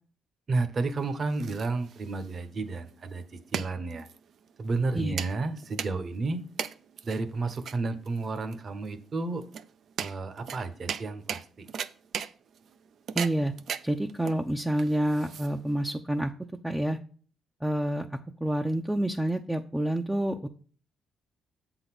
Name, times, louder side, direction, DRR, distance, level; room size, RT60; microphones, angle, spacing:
voice 1, 0.5-4.1 4.6-6.4 7.0-9.4 10.0-11.7, right 3 dB, 45° right, 10 dB, 1.1 m, -31 dB
sound 1, 1.0-15.9, right 7 dB, 65° right, 0.5 m, -39 dB
voice 2, 13.1-13.5 13.8-16.3 16.6-17.0 17.6-20.5, right 1 dB, 5° right, 3 dB, 0.6 m, -28 dB
7.5 x 4.0 x 6.0 m, 0.43 s
cardioid pair, 90°, 0 cm